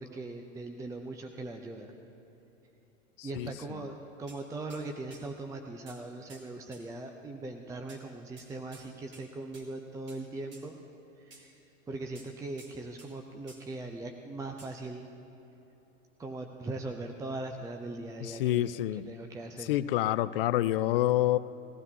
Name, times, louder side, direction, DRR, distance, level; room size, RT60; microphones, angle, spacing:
voice 1, 0.0-1.9 3.2-10.8 11.2-11.5 11.9-15.1 16.2-18.7 19.1-19.8, right 2 dB, 10° right, 4 dB, 0.6 m, -40 dB
voice 2, 3.2-3.8 18.2-19.1 19.6-21.4, left 14 dB, 50° left, 16 dB, 0.5 m, -28 dB
sound 1, 4.3-4.4 4.7-4.9 5.1-5.3 5.9-6.0 6.3-6.5 6.7-6.8 7.9-8.0 8.4-8.9 9.1-9.3 9.5-9.7 10.1-10.2 10.5-10.7 11.3-11.5 12.2-13.1 13.5-13.6 14.6-14.7, right 3 dB, 30° right, 2.4 m, -53 dB
20.5 x 15.5 x 2.8 m, 3.0 s
figure-of-eight pair, 90°, 38 cm